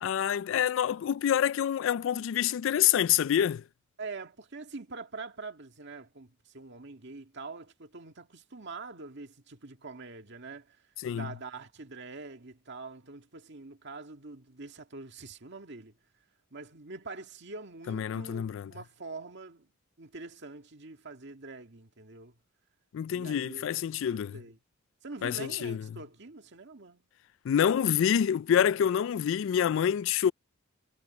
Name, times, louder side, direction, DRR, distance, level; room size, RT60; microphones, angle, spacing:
voice 1, 0.0-3.6 11.0-11.3 17.9-18.7 22.9-24.4 25.2-25.8 27.4-30.3, left 9 dB, 65° left, 0.3 m, -27 dB
voice 2, 4.0-10.9 11.1-15.9 16.5-19.7 20.0-22.3 23.1-23.7 24.1-24.6 25.0-27.1, right 3 dB, 60° right, 2.0 m, -44 dB
head